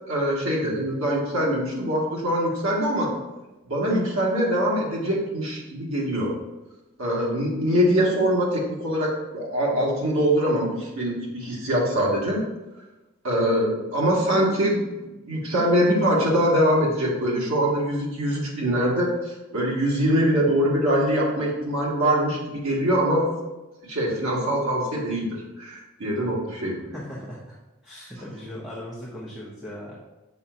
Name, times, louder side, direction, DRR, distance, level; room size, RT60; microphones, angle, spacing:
voice 1, 0.1-3.1 3.7-6.3 7.0-12.4 13.2-14.8 15.3-23.3 23.9-25.3 25.6-26.8, equal, 80° right, -4 dB, 1.9 m, -23 dB
voice 2, 26.9-27.6 27.8-29.9, left 1 dB, ahead, -6 dB, 0.9 m, -38 dB
7.1 x 5.6 x 2.7 m, 1.1 s
head